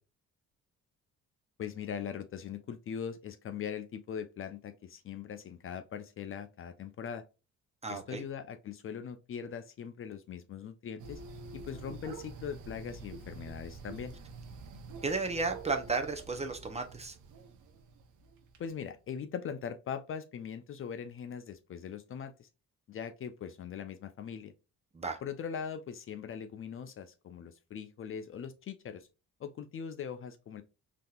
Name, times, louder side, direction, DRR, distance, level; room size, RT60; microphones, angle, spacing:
voice 1, 1.6-7.2 7.9-11.2 11.5-14.1 18.6-22.5 22.9-24.5 25.2-29.1 29.4-30.6, left 7 dB, 45° left, 0.5 m, -41 dB
voice 2, 7.8-8.2 15.0-17.2 24.9-25.2, right 4 dB, 20° right, 0.6 m, -33 dB
sound 1, 11.0-18.6, right 4 dB, 85° right, 0.7 m, -47 dB
3.5 x 2.9 x 2.3 m
cardioid pair, 90°, 30 cm